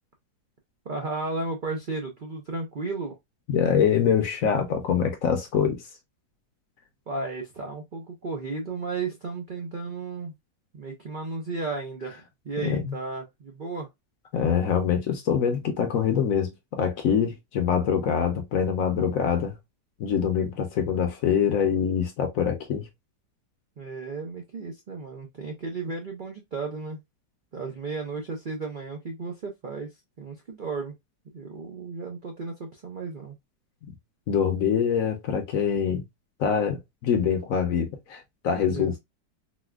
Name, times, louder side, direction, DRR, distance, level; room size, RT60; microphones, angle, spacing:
voice 1, 0.8-3.2 7.1-10.3 10.7-13.9 23.8-27.0 27.5-29.9 30.2-30.9 31.3-33.4 38.7-39.0, right 3 dB, 85° right, 0.4 m, -34 dB
voice 2, 3.5-5.8 12.6-12.9 14.3-19.5 20.0-22.9 34.3-36.0 36.4-39.0, left 7 dB, 65° left, 1.0 m, -24 dB
4.1 x 2.2 x 2.3 m
omnidirectional pair, 1.9 m